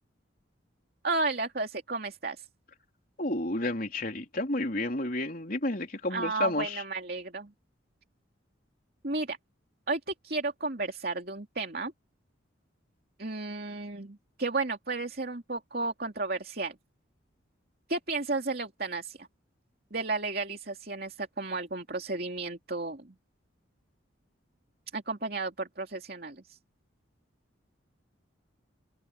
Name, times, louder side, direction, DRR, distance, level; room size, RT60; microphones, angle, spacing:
voice 1, 1.0-2.5 6.1-7.5 9.0-9.4 9.9-11.9 13.2-16.7 17.9-19.3 19.9-23.1 24.9-26.6, right 3 dB, 50° right, 2.8 m, -33 dB
voice 2, 3.2-6.8, left 1 dB, 45° left, 3.6 m, -31 dB
head